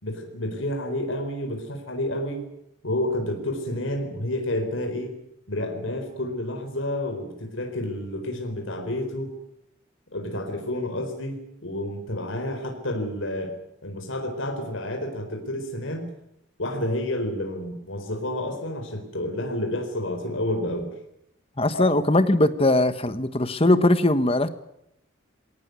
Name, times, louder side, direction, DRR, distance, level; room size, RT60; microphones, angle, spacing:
voice 1, 0.0-2.5 2.8-5.2 5.5-9.3 10.1-13.5 13.8-16.1 16.6-20.9 21.7-21.9, left 1 dB, 70° left, 4 dB, 4.3 m, -30 dB
voice 2, 21.6-24.5, left 1 dB, 25° left, 12 dB, 1.3 m, -20 dB
23.0 x 18.0 x 9.5 m, 0.80 s
head